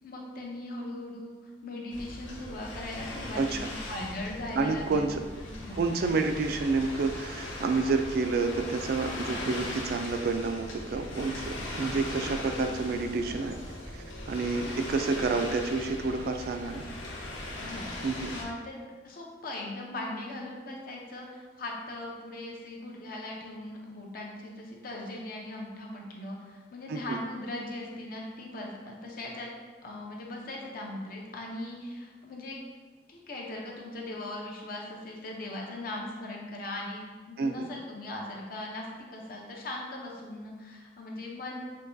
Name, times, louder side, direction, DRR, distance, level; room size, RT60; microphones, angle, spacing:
voice 1, 0.0-5.1 5.6-5.8 14.6-14.7 17.6-18.1 18.3-18.8 19.0-29.5 29.8-32.6 33.1-41.6, left 1 dB, 50° left, -2 dB, 0.6 m, -39 dB
sound 1, 1.9-18.4, left 1 dB, 85° left, 0.7 m, -39 dB
voice 2, 3.4-3.7 4.5-5.2 5.7-13.6 13.9-16.9 18.0-18.4 26.9-27.2 37.4-37.7, right 4 dB, 55° right, 6 dB, 0.3 m, -29 dB
6.1 x 2.2 x 2.6 m, 1.4 s
head